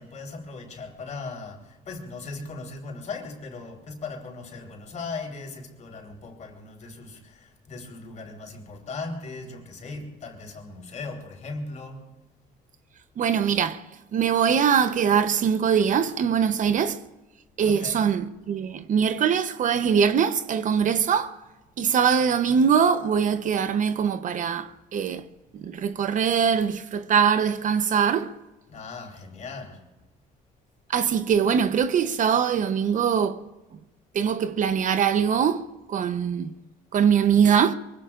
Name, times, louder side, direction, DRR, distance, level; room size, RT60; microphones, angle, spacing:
voice 1, 0.0-12.1 17.6-18.1 28.7-29.8, left 3 dB, 45° left, 4.0 m, -38 dB
voice 2, 13.2-17.0 17.6-21.4 21.8-25.3 25.5-28.4 30.9-33.4 34.1-36.5 36.9-37.7, right 7 dB, 50° right, 0.8 m, -22 dB
24.0 x 24.0 x 2.5 m
cardioid pair, 110°, 17 cm